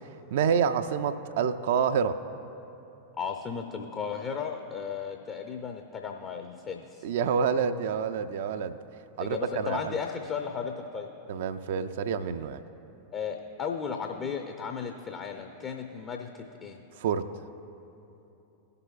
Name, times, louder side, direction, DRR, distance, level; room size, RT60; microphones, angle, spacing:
voice 1, 0.3-2.2 7.0-8.8 9.2-10.0 11.3-12.6 17.0-17.3, right 7 dB, 55° right, 10 dB, 0.3 m, -28 dB
voice 2, 3.2-7.0 9.2-11.1 13.1-16.8, left 6 dB, 30° left, 4 dB, 0.6 m, -35 dB
18.0 x 6.7 x 2.4 m, 2.9 s
figure-of-eight pair, 90°, 0 cm